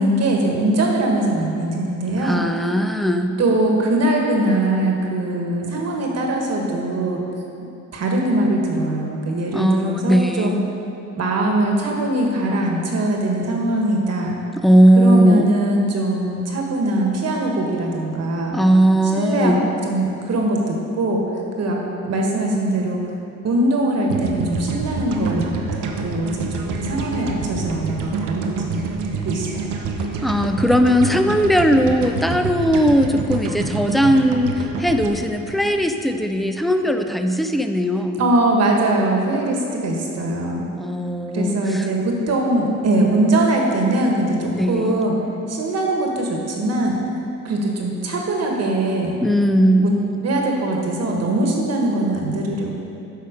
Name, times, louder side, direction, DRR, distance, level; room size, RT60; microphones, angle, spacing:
voice 1, 0.0-2.4 3.4-7.2 7.9-10.6 11.2-14.4 14.9-18.6 19.1-19.5 19.8-21.2 21.6-21.8 22.0-23.0 23.4-25.5 26.0-28.8 29.2-29.7 38.2-40.6 41.3-45.2 45.5-47.0 47.4-49.2 49.8-49.9 50.2-52.8, right 1 dB, 55° right, 0 dB, 1.5 m, -21 dB
voice 2, 2.2-3.3 9.5-10.6 14.6-15.5 18.5-19.6 30.2-38.2 40.8-41.9 44.6-45.0 49.2-49.9, equal, ahead, 6 dB, 0.5 m, -18 dB
sound 1, 24.1-36.3, right 4 dB, 85° right, 0.8 m, -27 dB
8.4 x 5.6 x 5.1 m, 2.7 s
cardioid pair, 90°, 30 cm